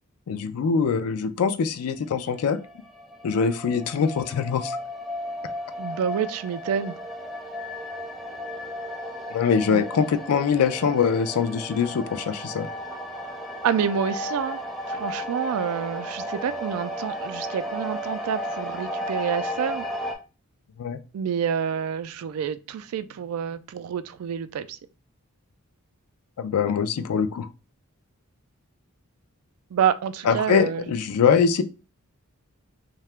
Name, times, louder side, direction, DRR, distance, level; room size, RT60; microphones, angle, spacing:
voice 1, 0.3-2.6 3.2-4.8 9.3-12.7 20.8-21.0 26.4-27.5 30.2-31.6, left 6 dB, 85° left, 0.4 m, -23 dB
sound 1, 2.1-20.1, equal, ahead, 0.4 m, -34 dB
voice 2, 5.8-7.0 9.7-9.8 13.6-14.6 14.9-19.9 21.1-24.8 29.7-30.9, right 7 dB, 80° right, 0.3 m, -28 dB
2.8 x 2.2 x 3.2 m
head